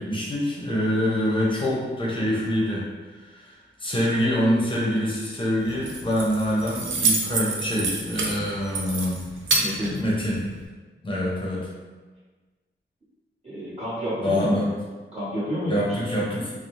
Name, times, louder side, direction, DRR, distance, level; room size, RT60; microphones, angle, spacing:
voice 1, 0.0-3.5 3.8-9.5 10.0-10.5 11.0-11.7 14.2-14.8 15.7-16.5, equal, 25° left, -5 dB, 0.7 m, -25 dB
Keys jangling, 5.6-10.7, right 3 dB, 75° right, 0.4 m, -28 dB
voice 2, 9.6-9.9 13.4-14.6 15.1-16.0, equal, 35° right, -11 dB, 1.0 m, -29 dB
2.6 x 2.0 x 3.0 m, 1.3 s
wide cardioid pair, 145°, 20 cm